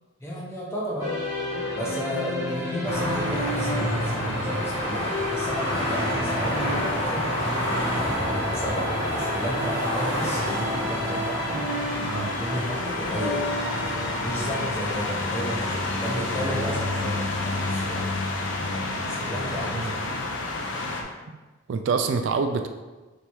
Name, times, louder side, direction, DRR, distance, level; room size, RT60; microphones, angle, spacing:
voice 1, 0.2-1.2 1.7-7.3 7.9-11.6 12.2-18.1 19.1-20.1, equal, 15° left, -4 dB, 0.8 m, -33 dB
sound 1, 1.0-17.9, left 1 dB, 15° right, 1.2 m, -33 dB
sound 2, 2.8-18.0, equal, 30° left, 1.1 m, -30 dB
sound 3, 6.2-21.0, left 2 dB, 70° left, 0.5 m, -31 dB
voice 2, 12.0-12.3 19.7-19.9 21.7-22.7, right 5 dB, 65° right, 6 dB, 0.3 m, -26 dB
3.3 x 2.9 x 4.4 m, 1.2 s
head